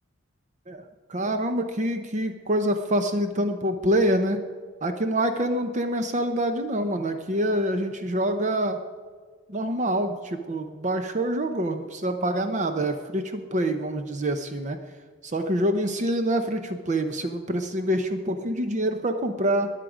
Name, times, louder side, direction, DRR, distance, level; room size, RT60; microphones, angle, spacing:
voice 1, 1.1-4.4 4.8-8.8 9.5-14.8 15.2-19.7, right 1 dB, 40° right, 7 dB, 0.8 m, -26 dB
21.0 x 7.6 x 5.0 m, 1.5 s
head